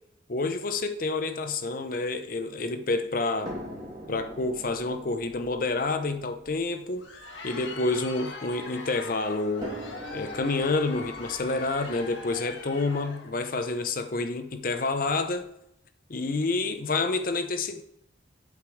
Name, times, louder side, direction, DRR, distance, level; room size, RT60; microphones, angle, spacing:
voice 1, 0.3-3.6 4.1-7.0 7.4-9.8 10.1-15.4 16.1-17.8, left 3 dB, 45° left, 0.7 m, -28 dB
sound 1, 3.4-8.7 9.6-13.6 14.5-14.6 15.1-15.2, equal, 25° right, 2.2 m, -44 dB
Crowd, 6.8-13.4, left 3 dB, 75° left, 1.6 m, -41 dB
8.4 x 5.2 x 6.3 m
head